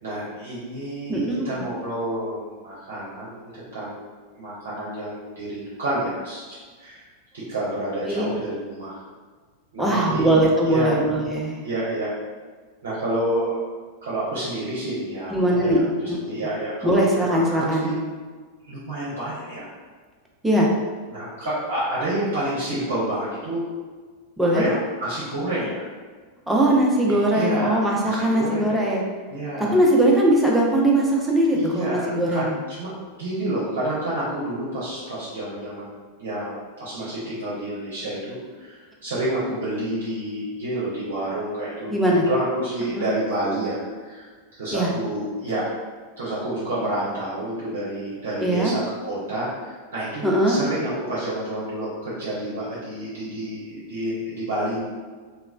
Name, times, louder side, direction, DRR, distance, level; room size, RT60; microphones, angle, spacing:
voice 1, 0.0-4.0 4.3-7.1 7.3-9.0 9.7-10.3 10.6-11.0 11.6-12.1 12.8-13.8 14.0-18.0 18.6-19.7 21.1-23.6 24.5-25.8 27.3-28.9 29.3-29.8 31.5-32.4 32.7-32.9 33.2-36.5 36.8-44.3 44.6-45.6 46.2-54.8, right 1 dB, 60° right, -9 dB, 0.7 m, -29 dB
voice 2, 1.1-1.6 8.1-8.3 9.8-11.6 15.3-16.2 16.8-18.0 20.4-20.7 24.4-24.6 26.5-29.0 29.6-32.5 41.9-42.3 43.0-43.1 44.7-44.9 48.4-48.7 50.2-50.6, right 1 dB, 5° right, -3 dB, 0.5 m, -20 dB
3.0 x 2.0 x 2.4 m, 1.5 s
figure-of-eight pair, 90°, 0 cm